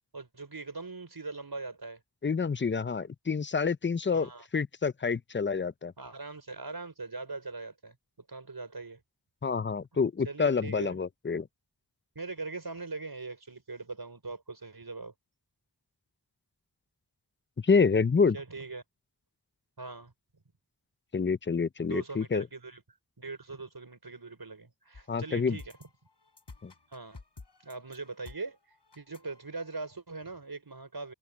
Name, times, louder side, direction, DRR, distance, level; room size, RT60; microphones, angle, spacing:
voice 1, 0.1-2.0 4.1-4.5 6.0-8.0 8.3-9.0 10.2-11.0 12.2-15.1 18.3-18.8 19.8-20.1 21.8-22.8 23.2-25.7 26.9-27.2 27.6-28.6 29.0-31.1, right 3 dB, 65° right, 5.4 m, -41 dB
voice 2, 2.2-5.9 9.4-11.5 17.6-18.4 21.1-22.4 25.1-25.6 26.6-26.7, left 5 dB, 30° left, 0.5 m, -27 dB
sound 1, 24.9-30.0, left 3 dB, 85° left, 7.2 m, -53 dB
wide cardioid pair, 60°, 41 cm